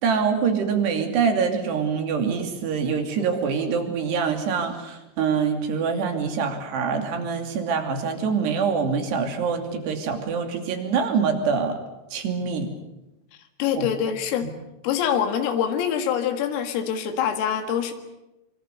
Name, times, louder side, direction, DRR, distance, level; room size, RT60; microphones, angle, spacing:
voice 1, 0.0-11.8 12.1-12.7 13.8-13.9 14.4-14.5, right 6 dB, 60° right, 5 dB, 4.5 m, -25 dB
voice 2, 13.6-14.5 14.8-17.9, left 9 dB, 85° left, 6 dB, 4.5 m, -25 dB
26.0 x 24.5 x 6.9 m, 0.96 s
omnidirectional pair, 5.8 m